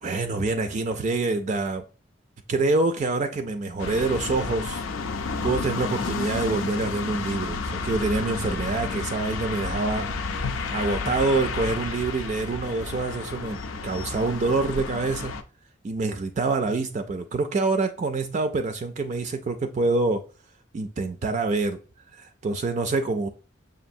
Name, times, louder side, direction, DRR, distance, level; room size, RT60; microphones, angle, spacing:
voice 1, 0.0-1.8 2.5-4.8 5.4-10.1 10.4-15.4 15.8-20.2 20.7-21.8 22.1-23.3, right 3 dB, 40° right, 0.3 m, -26 dB
sound 1, 3.8-15.4, left 4 dB, 90° left, 0.5 m, -31 dB
6.0 x 2.5 x 2.6 m
head